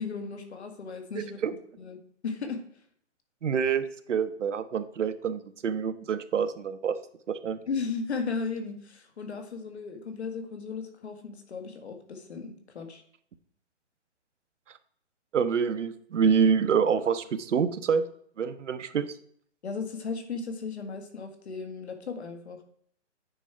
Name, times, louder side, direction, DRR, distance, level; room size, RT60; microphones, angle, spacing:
voice 1, 0.0-1.4 1.8-2.0 2.2-2.6 7.7-13.0 19.6-22.6, left 5 dB, 65° left, 5 dB, 1.8 m, -35 dB
voice 2, 1.2-1.5 3.4-7.0 7.3-7.6 15.3-18.0 18.4-19.1, right 6 dB, 85° right, 12 dB, 0.9 m, -26 dB
9.0 x 4.9 x 4.4 m, 0.64 s
hypercardioid pair, 170°, 36 cm